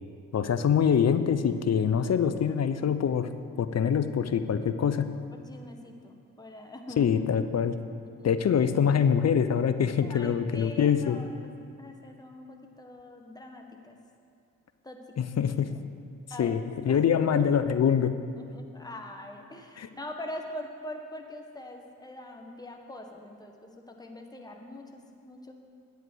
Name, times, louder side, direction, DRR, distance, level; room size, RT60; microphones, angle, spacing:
voice 1, 0.3-3.3 3.6-5.1 7.0-7.7 8.2-11.2 15.2-15.7 16.4-18.1 19.8-19.9, left 7 dB, 45° left, 11 dB, 0.7 m, -24 dB
voice 2, 5.3-7.1 7.3-7.7 8.0-8.3 10.0-11.5 11.8-14.0 14.8-15.3 16.3-16.5 16.9-17.4 18.4-25.5, left 1 dB, 10° left, 2 dB, 1.5 m, -43 dB
9.2 x 8.2 x 6.3 m, 2.3 s
hypercardioid pair, 45°, 35 cm